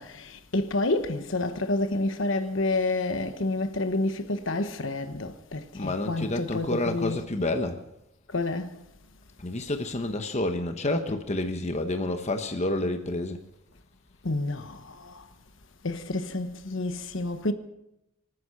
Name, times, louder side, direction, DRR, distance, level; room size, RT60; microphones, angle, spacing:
voice 1, 0.0-7.2 8.3-8.8 14.2-15.2 15.8-17.5, left 2 dB, 60° left, 1.2 m, -29 dB
voice 2, 5.7-7.8 9.4-13.4, left 2 dB, 30° left, 1.0 m, -29 dB
25.5 x 9.9 x 5.7 m
head